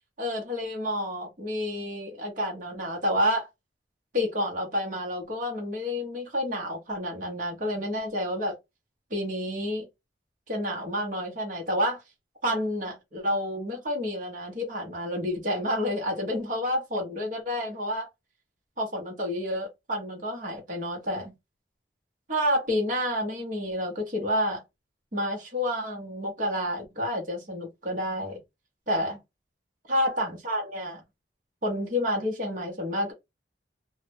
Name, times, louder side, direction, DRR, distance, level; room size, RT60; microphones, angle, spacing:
voice 1, 0.2-3.5 4.1-8.6 9.1-9.9 10.5-12.0 12.4-18.1 18.8-21.3 22.3-24.6 25.1-28.4 28.9-29.2 29.9-31.0 31.6-33.1, equal, 45° right, 0.8 m, -29 dB
2.2 x 2.0 x 3.3 m
head